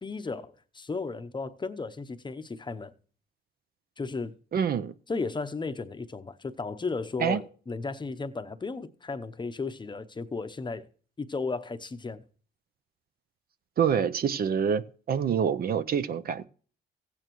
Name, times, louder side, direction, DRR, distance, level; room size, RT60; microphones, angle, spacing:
voice 1, 0.0-2.9 4.0-4.3 5.1-10.9 11.2-12.2, left 4 dB, 25° left, 0.7 m, -34 dB
voice 2, 4.5-4.9 7.2-7.4 13.8-16.4, right 7 dB, 50° right, 0.6 m, -26 dB
15.5 x 8.9 x 3.0 m
cardioid pair, 90°, 20 cm